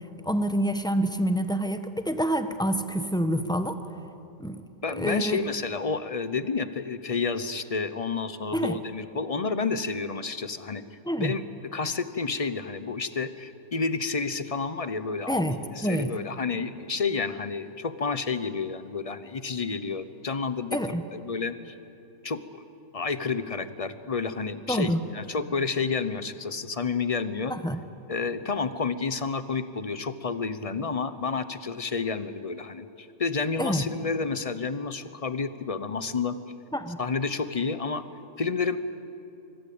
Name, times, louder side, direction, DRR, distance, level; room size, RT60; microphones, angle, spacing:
voice 1, 0.2-3.8 4.4-4.6 5.0-5.4 8.5-8.8 11.1-11.3 15.3-16.1 20.7-21.0 24.7-25.0 27.5-27.8 33.6-33.9 36.7-37.0, equal, 5° left, 9 dB, 1.0 m, -27 dB
voice 2, 4.8-10.8 11.2-11.4 11.7-15.4 15.7-20.8 21.1-21.7 22.2-22.6 22.9-27.5 28.1-36.4 37.0-38.0 38.4-38.8, left 4 dB, 30° left, 13 dB, 0.8 m, -30 dB
24.5 x 22.5 x 8.7 m, 2.7 s
omnidirectional pair, 1.6 m